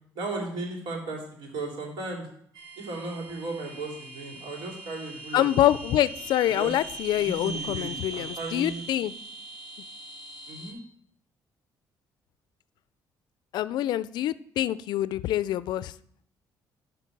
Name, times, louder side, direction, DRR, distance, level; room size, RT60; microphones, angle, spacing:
voice 1, 0.1-2.3 2.8-5.8 6.4-6.8 7.1-8.9 10.5-10.8, right 2 dB, 75° right, -1 dB, 2.9 m, -36 dB
sound 1, 2.5-10.7, right 3 dB, 55° right, 2.4 m, -41 dB
voice 2, 5.3-9.1 13.5-15.9, left 13 dB, 65° left, 17 dB, 0.4 m, -26 dB
11.5 x 3.9 x 6.0 m, 0.65 s
cardioid pair, 160°, 8 cm